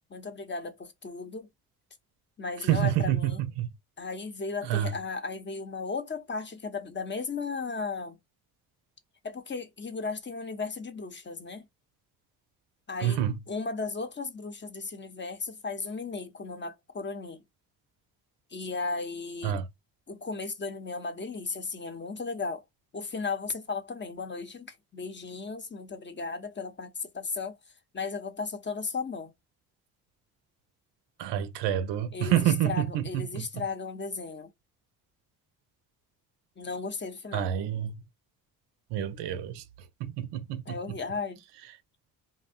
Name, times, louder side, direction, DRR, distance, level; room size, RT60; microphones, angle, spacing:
voice 1, 0.1-1.5 2.4-3.4 4.0-8.2 9.2-11.7 12.9-17.4 18.5-19.6 20.1-22.6 22.9-27.6 27.9-29.3 32.1-34.5 36.6-37.5 40.7-41.4, left 4 dB, 25° left, 0.7 m, -35 dB
voice 2, 2.7-3.7 4.7-4.9 13.0-13.4 19.4-19.7 31.2-33.5 37.3-37.9 38.9-39.6 40.0-40.8, right 11 dB, 70° right, 0.6 m, -28 dB
2.6 x 2.0 x 2.5 m
hypercardioid pair, 55°, 43 cm